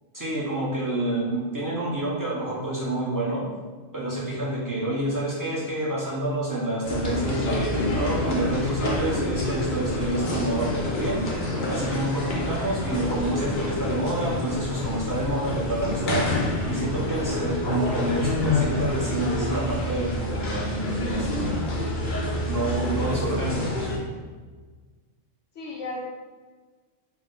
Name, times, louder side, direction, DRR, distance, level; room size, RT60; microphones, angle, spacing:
voice 1, 0.1-3.5 3.9-11.3 11.7-16.3 16.7-21.3 22.5-24.0, right 1 dB, 20° right, -7 dB, 0.8 m, -28 dB
sound 1, 6.8-24.0, left 1 dB, 50° left, 0.7 m, -27 dB
voice 2, 25.5-26.0, left 1 dB, 75° left, -3 dB, 1.0 m, -35 dB
4.2 x 2.1 x 3.8 m, 1.4 s
omnidirectional pair, 1.3 m